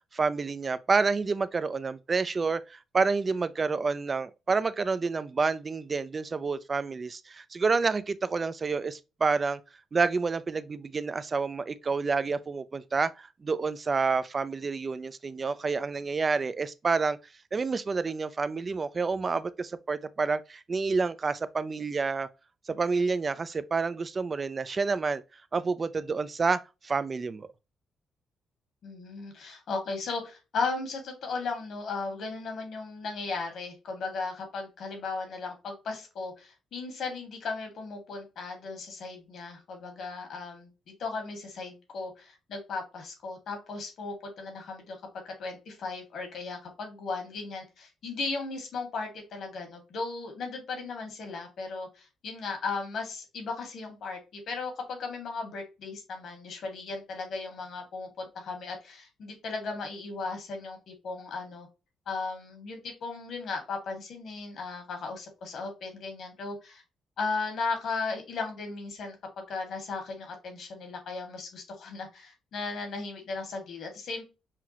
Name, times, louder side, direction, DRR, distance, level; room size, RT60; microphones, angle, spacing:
voice 1, 0.1-9.6 9.9-17.2 17.5-22.3 22.7-25.2 25.5-27.5, right 4 dB, 30° right, 0.4 m, -29 dB
voice 2, 28.8-45.0 45.2-61.7 62.1-66.8 67.2-74.3, left 4 dB, 65° left, 1.8 m, -36 dB
5.8 x 2.4 x 2.8 m
cardioid pair, 110°, 0 cm